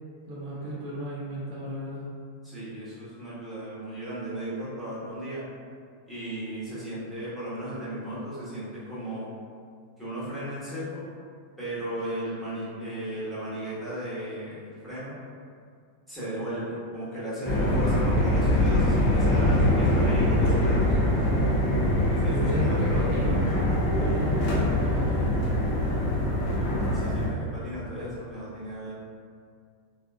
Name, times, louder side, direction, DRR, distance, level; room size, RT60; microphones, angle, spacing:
voice 1, 0.3-2.1 22.2-23.4 23.9-25.5, equal, 40° right, -8 dB, 0.6 m, -34 dB
voice 2, 2.4-5.5 6.1-9.3 10.0-11.1 11.6-15.2 16.1-20.8 22.1-23.0 26.9-28.9, right 1 dB, ahead, -12 dB, 1.2 m, -35 dB
sound 1, 17.4-27.3, left 1 dB, 40° left, 0.6 m, -23 dB
3.5 x 2.4 x 2.3 m, 2.2 s
figure-of-eight pair, 90°, 0 cm